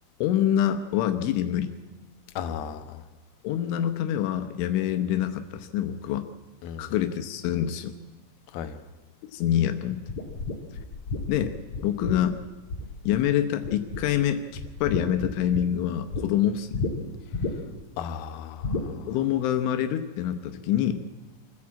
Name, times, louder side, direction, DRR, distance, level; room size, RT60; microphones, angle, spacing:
voice 1, 0.2-1.7 3.4-6.3 6.8-7.9 9.3-10.0 11.3-11.5 11.8-12.4 13.1-16.8 19.1-21.0, left 10 dB, 85° left, 7 dB, 3.4 m, -26 dB
voice 2, 2.4-3.0 6.6-6.9 8.5-8.8 18.0-19.1, left 8 dB, 65° left, 8 dB, 2.6 m, -36 dB
sound 1, 10.1-13.3 13.6-14.2 14.5-16.2 16.7-16.9 17.3-17.8 18.6-18.9, left 3 dB, 45° left, 2.8 m, -31 dB
25.0 x 15.0 x 8.6 m, 1.3 s
omnidirectional pair, 5.4 m